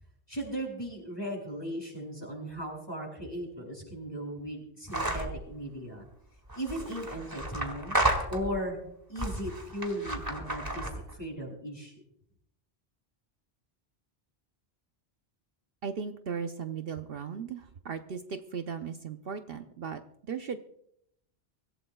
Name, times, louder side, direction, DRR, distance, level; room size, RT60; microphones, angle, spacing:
voice 1, 0.3-6.1 6.5-8.0 8.3-8.8 9.1-11.9, equal, 20° left, -1 dB, 6.5 m, -37 dB
sound 1, 4.9-5.4 6.5-8.7 9.2-11.1, right 1 dB, 20° right, 2.1 m, -32 dB
voice 2, 15.8-20.0 20.3-20.6, right 6 dB, 65° right, 7 dB, 0.9 m, -37 dB
24.5 x 16.0 x 2.3 m, 0.72 s
omnidirectional pair, 1.1 m